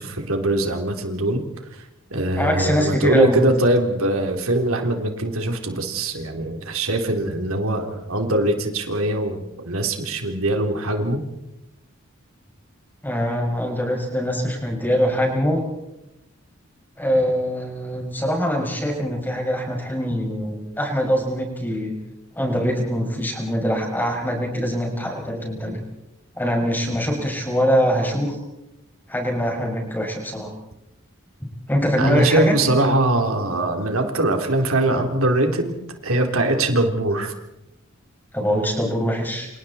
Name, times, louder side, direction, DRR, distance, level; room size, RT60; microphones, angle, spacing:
voice 1, 0.0-1.4 2.1-11.2 32.0-37.3, right 1 dB, 80° right, 4 dB, 3.6 m, -22 dB
voice 2, 2.4-3.4 13.0-15.6 17.0-21.9 22.4-25.8 26.4-28.4 29.1-30.5 31.7-32.6 38.3-39.5, equal, 10° left, 1 dB, 6.2 m, -23 dB
29.0 x 27.5 x 4.4 m, 0.90 s
head